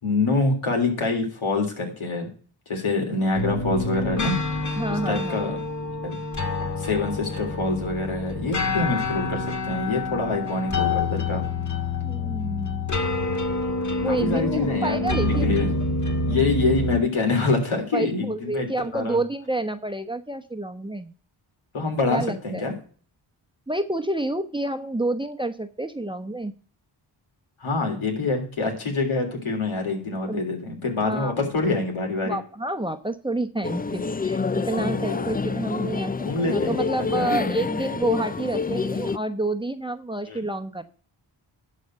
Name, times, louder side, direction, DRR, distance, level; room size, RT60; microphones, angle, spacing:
voice 1, 0.0-2.3 2.7-4.4 4.9-5.6 6.0-6.2 6.8-11.4 14.1-15.8 16.3-18.7 18.9-19.2 21.7-22.7 27.6-32.4 34.8-35.3 36.2-37.4 40.3-40.4, left 3 dB, 75° left, 2 dB, 3.5 m, -26 dB
sound 1, 3.3-17.0, left 2 dB, 35° left, 2.0 m, -27 dB
voice 2, 4.8-5.4 12.0-12.9 14.0-15.6 17.9-21.1 22.1-22.8 23.7-26.5 30.3-30.4 31.0-31.4 32.2-36.1 36.4-40.8, right 2 dB, 10° right, 10 dB, 1.0 m, -29 dB
sound 2, 33.6-39.2, left 4 dB, 20° left, 0.4 m, -27 dB
11.5 x 4.3 x 7.7 m, 0.42 s
cardioid pair, 45°, 49 cm